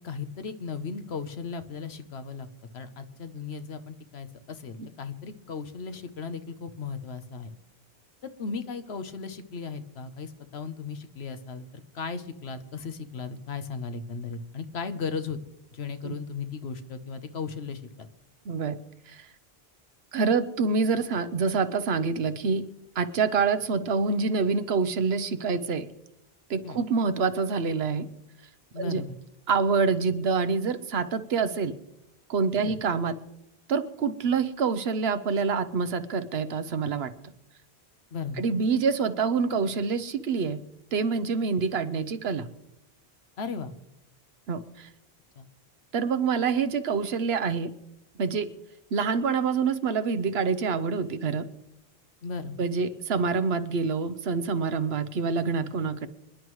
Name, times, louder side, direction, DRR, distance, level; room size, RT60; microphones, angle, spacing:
voice 1, 0.0-2.5 2.7-7.5 8.4-15.4 15.7-18.1 26.6-26.8 28.7-29.2 32.6-32.8 38.1-38.5 43.4-43.7 45.4-45.5 52.2-52.6, left 5 dB, 90° left, 10 dB, 1.2 m, -36 dB
voice 2, 18.5-18.8 20.1-22.7 23.0-25.9 26.5-28.1 28.8-29.0 29.5-31.7 32.3-33.2 33.7-37.1 38.4-40.6 40.9-42.5 44.5-44.9 45.9-47.7 48.2-48.5 48.9-51.5 52.6-56.1, right 5 dB, 80° right, 12 dB, 1.0 m, -26 dB
26.0 x 11.0 x 3.1 m, 0.86 s
omnidirectional pair, 1.0 m